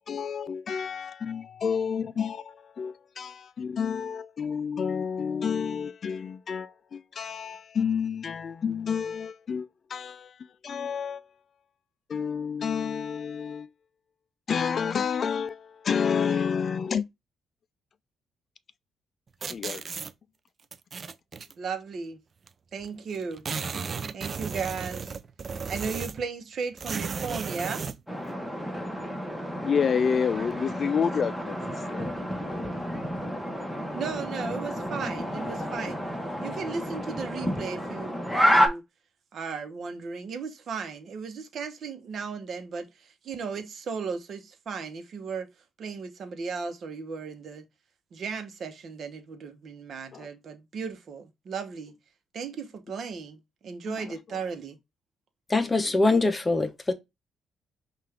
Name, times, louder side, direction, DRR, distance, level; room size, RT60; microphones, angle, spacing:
voice 1, 0.1-10.4 10.6-11.2 12.1-13.7 14.5-17.0 19.5-19.8 29.6-33.2 50.1-50.3 53.9-54.1 55.6-55.9, left 6 dB, 50° left, 0.4 m, -30 dB
sound 1, 19.4-20.1 20.7-21.5 22.5-22.6 22.8-22.9 23.1-26.3 26.8-28.0, right 5 dB, 40° right, 0.4 m, -34 dB
voice 2, 21.6-22.2 22.7-23.5 24.1-25.1 25.7-27.8 33.9-36.0 36.4-38.8 39.3-45.5 45.8-47.6 48.1-51.9 52.3-54.8, right 5 dB, 60° right, 0.9 m, -36 dB
sound 2, 28.1-38.7, equal, ahead, 1.1 m, -30 dB
voice 3, 55.5-56.9, left 3 dB, 20° left, 0.7 m, -23 dB
5.5 x 2.5 x 3.3 m
cardioid pair, 90°, 0 cm